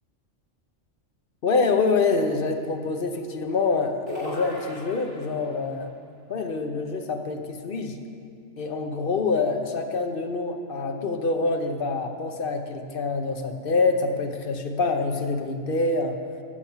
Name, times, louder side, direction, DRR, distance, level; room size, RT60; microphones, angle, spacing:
voice 1, 1.4-5.9 6.3-8.0 8.6-16.2, left 3 dB, 50° left, 5 dB, 0.9 m, -26 dB
sound 1, 4.1-5.6, left 1 dB, 20° left, 2.5 m, -36 dB
13.5 x 5.8 x 7.2 m, 2.2 s
omnidirectional pair, 1.4 m